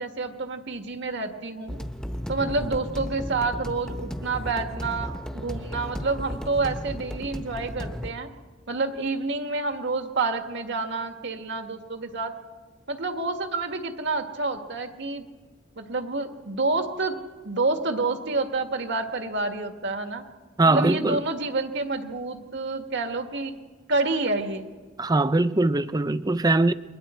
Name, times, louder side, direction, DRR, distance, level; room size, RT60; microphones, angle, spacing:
voice 1, 0.0-1.8 2.3-8.3 8.7-12.3 12.9-15.3 15.8-17.1 17.4-20.2 20.6-23.5 23.9-24.7, right 3 dB, 60° right, 1.7 m, -28 dB
sound 1, 1.7-8.1, equal, 5° left, 1.0 m, -34 dB
voice 2, 20.6-21.2 25.0-26.7, right 2 dB, 20° right, 0.5 m, -21 dB
29.0 x 22.5 x 4.4 m
head